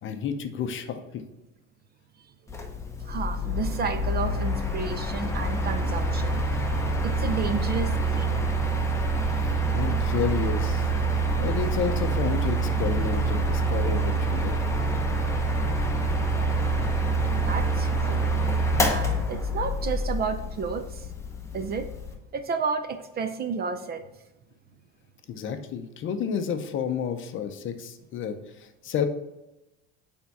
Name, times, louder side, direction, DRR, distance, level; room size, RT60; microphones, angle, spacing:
voice 1, 0.0-1.2 9.3-14.5 25.3-29.0, left 7 dB, 40° left, 8 dB, 0.6 m, -31 dB
Mechanical fan, 2.5-22.1, right 2 dB, 10° left, 0.8 m, -26 dB
voice 2, 3.0-6.4 7.0-8.4 17.3-18.2 18.8-21.1 21.5-21.9 22.3-24.0, right 5 dB, 30° right, 8 dB, 0.4 m, -31 dB
8.9 x 3.6 x 4.1 m, 0.95 s
cardioid pair, 160°, 31 cm